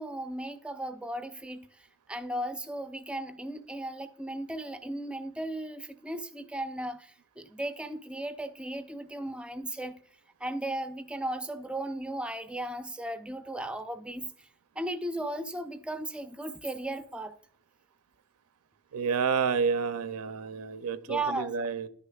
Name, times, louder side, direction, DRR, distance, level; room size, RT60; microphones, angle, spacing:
voice 1, 0.0-1.7 2.1-10.0 10.4-14.5 14.8-17.3 21.1-21.5, right 1 dB, 5° right, 0.4 m, -36 dB
voice 2, 18.9-21.9, right 5 dB, 85° right, 0.5 m, -29 dB
11.0 x 6.6 x 2.3 m
head